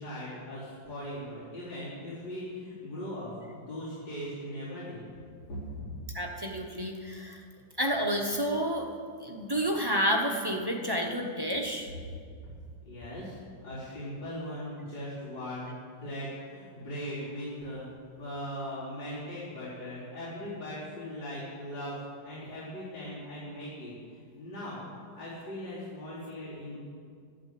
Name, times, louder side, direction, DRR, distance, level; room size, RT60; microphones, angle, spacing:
voice 1, 0.0-5.1 5.5-5.6 12.8-17.9 18.2-24.9 25.1-26.8, equal, 85° left, -13 dB, 4.8 m, -39 dB
voice 2, 6.1-7.4 7.8-8.9 9.2-11.9, equal, 15° right, 1 dB, 0.8 m, -30 dB
11.5 x 10.5 x 7.7 m, 2.1 s
omnidirectional pair, 1.9 m